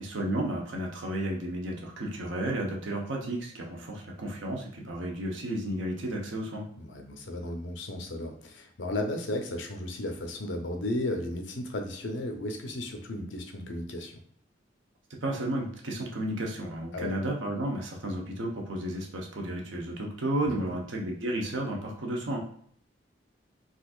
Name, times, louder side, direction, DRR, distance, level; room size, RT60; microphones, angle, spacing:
voice 1, 0.0-6.6 15.2-22.4, right 1 dB, 80° right, 0 dB, 0.8 m, -32 dB
voice 2, 6.8-14.2 16.9-17.1 20.5-20.8, left 1 dB, 75° left, 4 dB, 0.6 m, -34 dB
4.0 x 2.5 x 2.4 m, 0.62 s
head